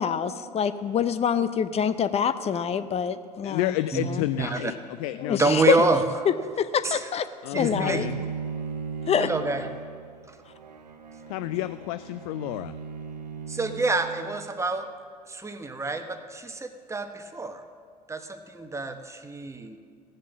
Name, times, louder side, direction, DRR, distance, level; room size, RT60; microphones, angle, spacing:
voice 1, 0.0-3.7 4.1-4.2 5.2-5.8 6.3-7.3 7.6-8.0 9.1-9.3, left 8 dB, 30° left, 12 dB, 0.7 m, -25 dB
voice 2, 3.4-5.5 5.8-5.9 7.4-8.2 11.3-12.7, left 16 dB, 60° left, 13 dB, 0.4 m, -30 dB
voice 3, 4.4-4.7 5.3-6.0 6.8-7.0 7.5-8.1 9.2-9.6 13.5-14.8 15.3-17.6 18.1-18.2 18.5-19.8, right 3 dB, 15° right, 7 dB, 1.1 m, -27 dB
Bowed string instrument, 7.6-14.6, right 6 dB, 85° right, 0.8 m, -37 dB
16.5 x 7.3 x 7.3 m, 2.1 s
figure-of-eight pair, 70°, 21 cm